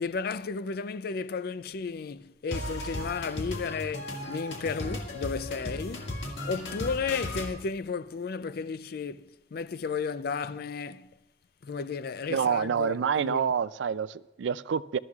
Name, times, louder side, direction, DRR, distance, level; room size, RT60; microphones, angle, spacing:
voice 1, 0.0-6.2 6.4-11.1 11.6-13.5, left 5 dB, 55° left, 0.4 m, -33 dB
sound 1, 2.5-7.5, left 1 dB, 70° left, 1.9 m, -36 dB
voice 2, 12.3-15.0, right 7 dB, 70° right, 0.4 m, -27 dB
20.5 x 13.0 x 2.4 m
head